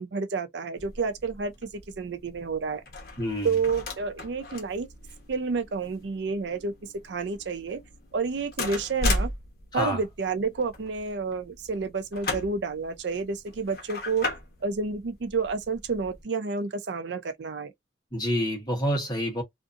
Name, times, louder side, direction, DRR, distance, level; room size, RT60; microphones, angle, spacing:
voice 1, 0.0-1.7 2.0-2.8 3.4-4.9 5.3-6.7 7.0-7.8 8.1-9.3 9.7-14.3 14.6-17.7, right 4 dB, 70° right, 0.5 m, -30 dB
sound 1, 0.8-16.2, left 2 dB, 55° left, 0.9 m, -37 dB
voice 2, 3.2-3.5 9.7-10.0 18.1-19.4, equal, 20° left, 1.0 m, -27 dB
2.5 x 2.5 x 2.4 m
head